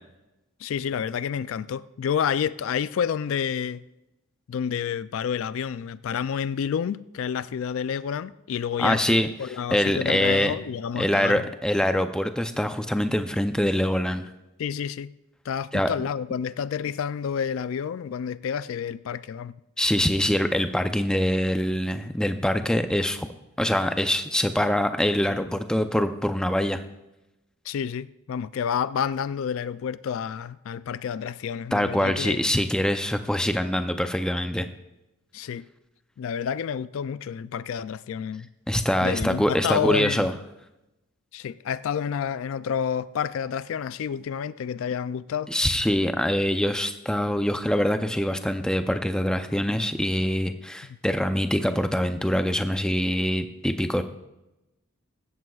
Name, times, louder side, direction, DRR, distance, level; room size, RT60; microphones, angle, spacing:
voice 1, 0.6-3.8 4.5-11.4 14.6-15.1 15.4-19.5 27.7-32.4 35.3-35.6 36.2-38.5 39.0-40.3 41.3-45.5 50.9-51.0, left 7 dB, 65° left, 0.3 m, -29 dB
voice 2, 8.8-9.3 9.7-10.6 11.0-14.3 15.7-15.9 19.8-23.3 23.6-26.8 31.7-34.7 38.7-40.3 45.5-54.0, equal, 5° left, 0.5 m, -24 dB
17.0 x 14.0 x 2.4 m
head